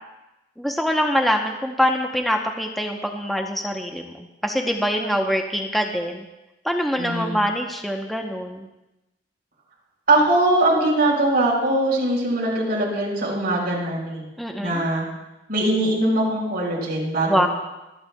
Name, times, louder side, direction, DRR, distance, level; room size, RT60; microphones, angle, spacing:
voice 1, 0.6-6.2 6.6-8.7 14.4-14.8 17.3-17.5, equal, ahead, 2 dB, 0.8 m, -24 dB
voice 2, 7.0-7.4 10.1-14.3 14.6-15.1 15.5-17.5, right 1 dB, 50° right, -3 dB, 4.3 m, -21 dB
25.5 x 8.8 x 2.3 m, 0.98 s
head